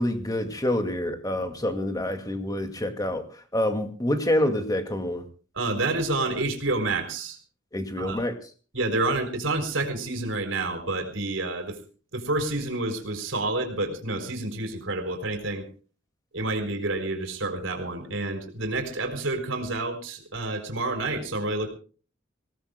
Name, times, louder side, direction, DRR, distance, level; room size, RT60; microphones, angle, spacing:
voice 1, 0.0-5.2 7.7-8.4, left 1 dB, 20° left, 6 dB, 2.1 m, -27 dB
voice 2, 5.5-7.4 8.0-8.2 8.7-11.8 12.1-15.6 16.3-21.7, right 2 dB, 80° right, 6 dB, 4.3 m, -29 dB
26.0 x 18.0 x 2.2 m, 0.38 s
head